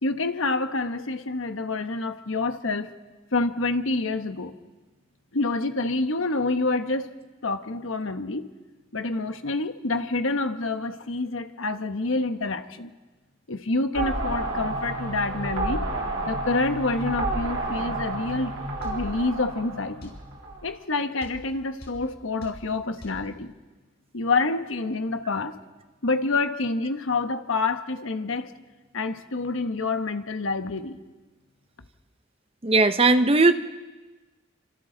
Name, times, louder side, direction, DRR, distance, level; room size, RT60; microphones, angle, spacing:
voice 1, 0.0-2.9 3.3-4.5 5.3-7.1 7.4-8.5 8.9-12.9 13.5-15.9 16.3-18.5 18.8-20.1 20.6-23.5 24.1-25.6 26.0-28.5 28.9-31.0, left 3 dB, 70° left, 8 dB, 1.2 m, -27 dB
sound 1, 13.9-20.7, right 2 dB, 70° right, 3.5 m, -30 dB
sound 2, 18.8-19.0 20.0-20.2 21.2-21.4 21.8-22.0 22.4-22.6 23.0-23.2, left 1 dB, 50° left, 5.2 m, -43 dB
voice 2, 32.6-33.5, right 3 dB, 25° right, 10 dB, 0.7 m, -18 dB
29.5 x 25.5 x 4.0 m, 1.2 s
head